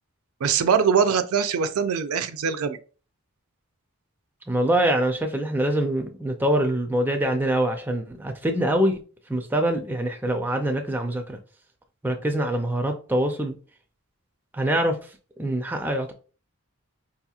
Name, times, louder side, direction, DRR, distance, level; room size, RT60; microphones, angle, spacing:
voice 1, 0.4-2.8, right 6 dB, 75° right, 0.4 m, -22 dB
voice 2, 4.5-9.0 9.3-11.4 12.0-13.6 14.5-15.1 15.4-16.1, right 1 dB, 10° right, 0.4 m, -24 dB
4.7 x 2.8 x 2.3 m
head